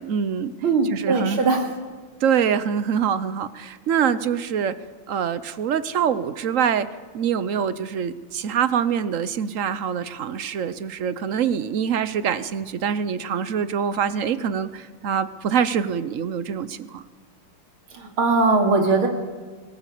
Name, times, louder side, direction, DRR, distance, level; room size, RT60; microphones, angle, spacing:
voice 1, 0.0-0.5 0.9-1.4 2.2-4.8 5.1-6.9 7.1-17.0, right 7 dB, 60° right, 14 dB, 0.8 m, -24 dB
voice 2, 0.6-1.7 17.9-19.1, right 3 dB, 85° right, 3 dB, 3.4 m, -20 dB
21.5 x 18.0 x 8.4 m, 1.4 s
omnidirectional pair, 2.3 m